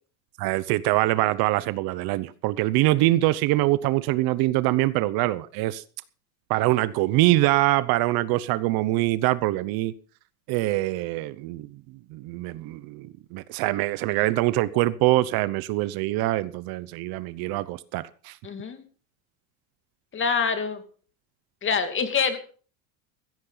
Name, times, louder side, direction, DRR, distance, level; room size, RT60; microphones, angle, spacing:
voice 1, 0.4-5.8 6.5-9.9 10.5-11.7 12.1-18.4, right 17 dB, 55° right, 0.9 m, -24 dB
voice 2, 18.4-18.8 20.1-20.8 21.6-22.4, left 6 dB, 25° left, 2.4 m, -25 dB
15.5 x 14.5 x 4.0 m
supercardioid pair, 130°, 43 cm